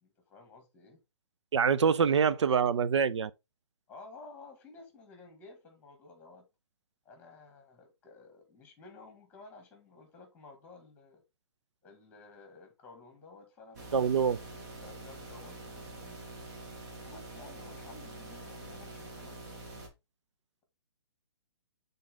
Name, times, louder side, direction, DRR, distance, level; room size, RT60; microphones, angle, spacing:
voice 1, 0.0-1.0 1.8-2.4 2.7-2.8 3.9-6.5 7.1-11.2 11.8-16.3 17.1-19.6, left 3 dB, 10° left, 1.9 m, -54 dB
voice 2, 1.5-3.3 13.9-14.4, right 6 dB, 80° right, 0.6 m, -25 dB
sound 1, 13.7-19.9, right 2 dB, 40° right, 2.1 m, -46 dB
7.5 x 3.9 x 3.6 m
hypercardioid pair, 155°, 15 cm